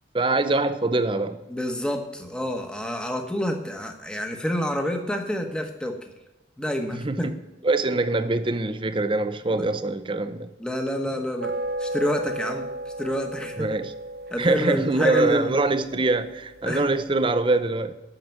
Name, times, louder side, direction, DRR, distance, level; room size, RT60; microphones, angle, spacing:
voice 1, 0.1-1.4 6.9-7.3 7.6-10.5 13.6-13.9 14.4-17.9, right 2 dB, 30° right, 0.6 m, -24 dB
voice 2, 1.5-6.0 6.6-7.3 9.5-9.7 10.6-11.5 11.8-12.7 13.0-13.7 14.3-15.5 16.6-16.8, left 1 dB, 5° left, 1.1 m, -28 dB
sound 1, 11.4-16.9, right 1 dB, 55° right, 0.8 m, -34 dB
9.0 x 6.6 x 7.3 m
head